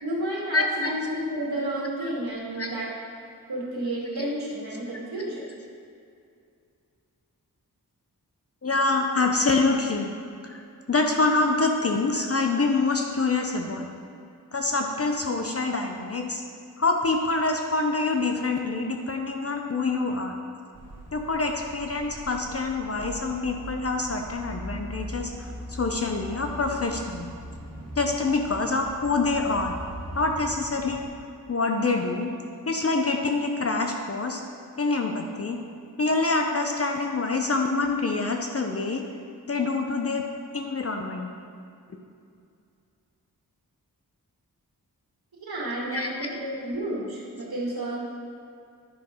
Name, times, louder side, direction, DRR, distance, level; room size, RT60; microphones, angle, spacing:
voice 1, 0.0-2.9 3.5-5.5 45.4-48.0, right 1 dB, 80° right, -5 dB, 2.1 m, -31 dB
voice 2, 0.5-0.9 2.0-2.1 2.6-2.7 8.6-10.1 10.4-10.6 10.9-13.9 14.5-16.4 16.8-20.4 21.1-27.3 28.0-29.7 30.1-31.0 31.5-32.3 32.7-34.4 34.8-35.6 36.0-39.0 39.5-40.2 40.5-41.3 45.9-46.2, left 3 dB, 40° left, 3 dB, 0.6 m, -26 dB
sound 1, 20.7-31.1, equal, 45° right, 1.8 m, -40 dB
10.5 x 5.8 x 3.7 m, 2.4 s
wide cardioid pair, 80°, 37 cm